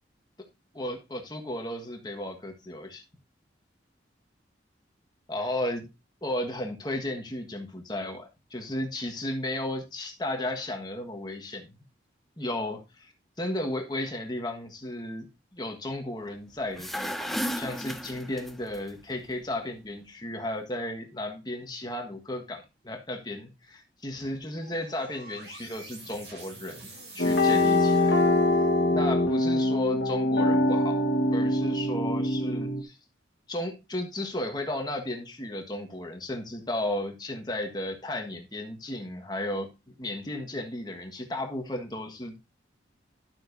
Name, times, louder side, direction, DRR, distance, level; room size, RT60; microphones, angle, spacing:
voice 1, 0.7-3.0 5.3-5.9 6.2-11.8 12.4-28.7 28.9-31.0 31.3-33.0 33.5-42.4, left 1 dB, 20° left, 4 dB, 1.4 m, -34 dB
sound 1, 16.6-18.8, equal, ahead, 0.5 m, -33 dB
sound 2, 24.6-28.9, right 2 dB, 65° right, 5.4 m, -47 dB
sound 3, 27.2-32.8, left 1 dB, 65° left, 1.5 m, -23 dB
12.0 x 7.5 x 2.6 m, 0.24 s
head